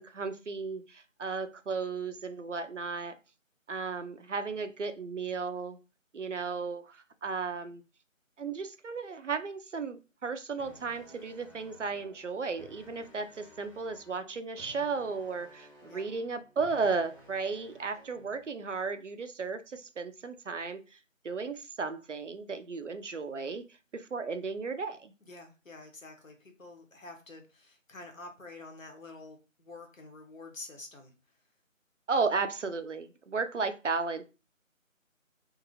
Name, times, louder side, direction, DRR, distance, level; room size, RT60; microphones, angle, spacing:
voice 1, 0.0-3.2 3.7-5.8 6.1-7.8 8.4-20.8 21.2-23.6 23.9-25.1 32.1-34.2, right 4 dB, 65° right, 10 dB, 0.5 m, -34 dB
sound 1, 10.5-18.5, right 1 dB, 25° left, 1.0 m, -55 dB
voice 2, 25.2-31.1, left 2 dB, 70° left, 4 dB, 1.1 m, -48 dB
2.8 x 2.5 x 2.7 m, 0.31 s
figure-of-eight pair, 165°, 40 cm